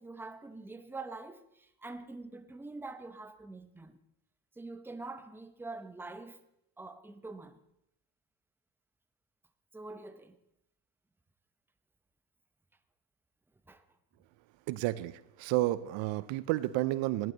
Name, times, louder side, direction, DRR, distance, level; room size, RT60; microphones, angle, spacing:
voice 1, 0.0-4.0 4.6-6.4 6.8-7.6 9.7-10.4 13.7-13.8, right 3 dB, 5° right, 0.8 m, -45 dB
voice 2, 14.7-15.1 15.4-17.3, right 16 dB, 65° right, 0.7 m, -31 dB
15.0 x 10.5 x 3.9 m
supercardioid pair, 90°, 50 cm